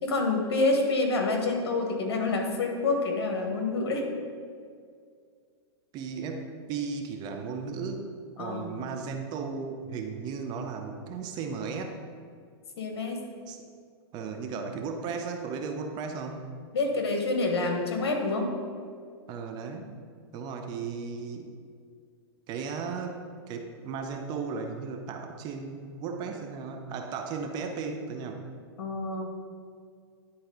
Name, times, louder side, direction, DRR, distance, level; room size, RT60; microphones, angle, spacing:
voice 1, 0.0-4.1 8.4-8.7 12.8-13.2 16.7-18.5 28.8-29.3, left 3 dB, 70° left, 2 dB, 1.6 m, -27 dB
voice 2, 5.9-8.1 8.4-12.0 13.5-13.6 14.1-16.4 19.3-20.0 20.3-21.5 22.5-23.2 23.5-28.4, right 5 dB, 30° right, 4 dB, 0.7 m, -35 dB
10.5 x 4.2 x 3.9 m, 2.1 s
hypercardioid pair, 140°, 14 cm